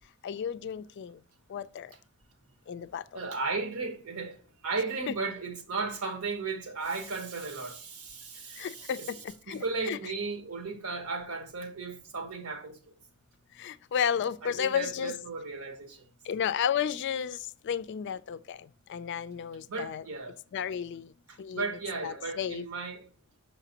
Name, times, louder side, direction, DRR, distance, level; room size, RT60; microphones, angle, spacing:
voice 1, 0.2-1.2 1.5-1.9 2.7-3.0 5.1-5.2 8.6-10.0 13.6-15.1 16.3-20.0 20.5-21.1 21.4-21.7 22.0-22.6, left 8 dB, 55° left, 0.3 m, -33 dB
voice 2, 3.1-9.2 9.5-12.9 14.4-16.0 19.7-20.4 21.3-23.1, right 4 dB, 85° right, 1.2 m, -35 dB
5.8 x 5.7 x 2.8 m
head